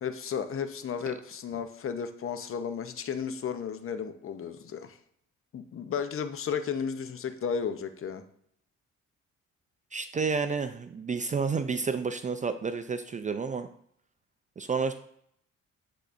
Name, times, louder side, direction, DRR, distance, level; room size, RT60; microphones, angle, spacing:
voice 1, 0.0-5.0 5.5-8.2, left 7 dB, 45° left, 9 dB, 0.7 m, -33 dB
voice 2, 9.9-13.7 14.6-14.9, right 5 dB, 25° right, 9 dB, 0.4 m, -30 dB
9.8 x 3.8 x 2.5 m, 0.69 s
cardioid pair, 90°, 30 cm